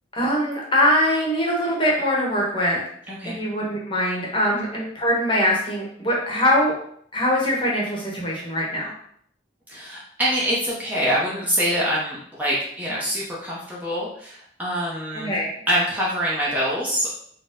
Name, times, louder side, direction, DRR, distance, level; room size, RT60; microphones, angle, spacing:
voice 1, 0.1-2.8 3.2-6.7 7.1-8.9 15.1-15.5, equal, 25° left, -3 dB, 0.9 m, -22 dB
voice 2, 3.1-3.4 4.5-4.6 9.7-15.3 15.7-17.1, equal, 10° right, -6 dB, 0.7 m, -25 dB
4.3 x 2.2 x 3.6 m, 0.64 s
head